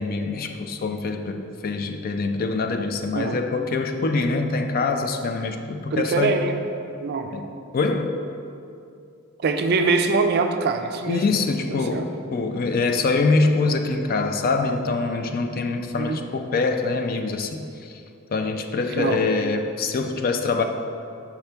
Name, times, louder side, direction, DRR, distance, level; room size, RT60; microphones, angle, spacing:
voice 1, 0.0-6.4 7.3-7.5 7.7-8.2 11.1-18.0 18.3-20.6, left 3 dB, 40° left, 6 dB, 0.4 m, -24 dB
voice 2, 5.9-6.6 7.0-7.3 9.4-11.3 11.7-12.1 16.0-16.2 18.9-19.2, right 4 dB, 45° right, 6 dB, 0.4 m, -23 dB
5.8 x 5.7 x 3.4 m, 2.5 s
head